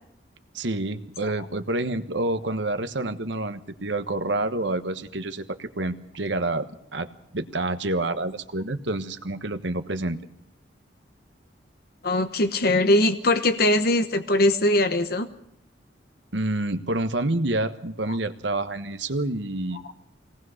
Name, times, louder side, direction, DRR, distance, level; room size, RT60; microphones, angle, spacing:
voice 1, 0.5-6.7 6.9-7.1 7.3-10.2 16.3-19.8, right 2 dB, 80° right, 9 dB, 1.3 m, -28 dB
voice 2, 12.0-15.3, left 1 dB, 55° left, 8 dB, 1.1 m, -21 dB
23.0 x 18.5 x 6.5 m, 0.72 s
head